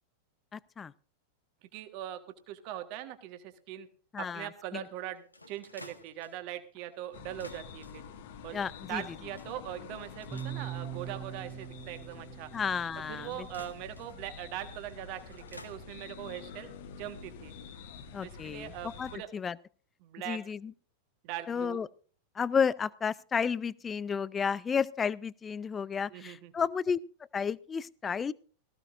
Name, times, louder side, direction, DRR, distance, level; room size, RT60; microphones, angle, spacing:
voice 1, 0.5-0.9 4.1-4.9 8.5-9.0 12.5-13.5 18.1-18.7 19.0-19.6 20.3-20.7 21.5-21.9 22.3-27.0 27.3-28.3, left 6 dB, 20° left, 22 dB, 0.5 m, -32 dB
voice 2, 1.7-2.2 2.5-3.9 4.2-8.0 8.4-8.6 8.9-12.5 13.1-17.5 18.2-19.3 20.0-20.4 21.2-21.8 26.1-26.5, right 12 dB, 45° right, 9 dB, 1.4 m, -41 dB
sound 1, 4.5-15.8, left 1 dB, 85° left, 1.5 m, -55 dB
sound 2, 7.1-19.2, left 6 dB, 55° left, 1.3 m, -48 dB
sound 3, 10.3-14.4, right 10 dB, 15° right, 1.4 m, -43 dB
18.5 x 15.0 x 2.6 m, 0.40 s
figure-of-eight pair, 90°, 0 cm